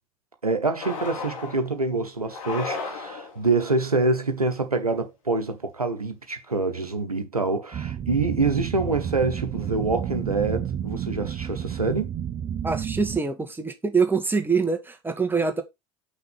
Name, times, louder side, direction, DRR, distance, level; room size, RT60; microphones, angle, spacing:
voice 1, 0.4-12.1, right 3 dB, 90° right, 0.9 m, -26 dB
sound 1, 0.8-1.7 2.3-3.5, left 4 dB, 65° left, 1.9 m, -34 dB
sound 2, 7.7-13.2, right 9 dB, 35° right, 0.7 m, -31 dB
voice 2, 12.6-15.6, right 5 dB, 10° right, 1.5 m, -24 dB
5.8 x 3.9 x 5.0 m
figure-of-eight pair, 70°, 19 cm